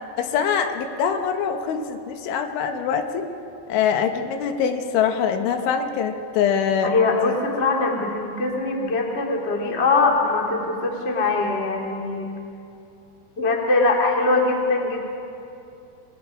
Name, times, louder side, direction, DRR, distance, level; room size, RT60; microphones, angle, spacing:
voice 1, 0.2-3.3 3.7-6.9 7.2-7.4, left 7 dB, 85° left, 6 dB, 3.6 m, -23 dB
voice 2, 6.8-12.3 13.4-15.0, left 3 dB, 30° left, 0 dB, 1.2 m, -22 dB
28.5 x 20.0 x 4.9 m, 2.6 s
omnidirectional pair, 5.4 m